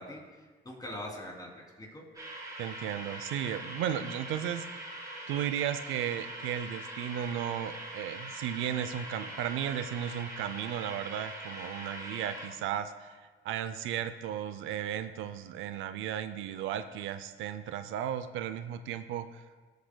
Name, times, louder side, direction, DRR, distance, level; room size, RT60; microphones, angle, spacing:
voice 1, 0.0-2.0, left 1 dB, 20° left, -1 dB, 2.9 m, -43 dB
sound 1, 2.1-12.5, right 1 dB, 20° right, 3.4 m, -42 dB
voice 2, 2.6-4.7 5.3-19.4, right 10 dB, 90° right, 11 dB, 0.5 m, -35 dB
18.5 x 8.1 x 2.2 m, 1.4 s
cardioid pair, 90°, 20 cm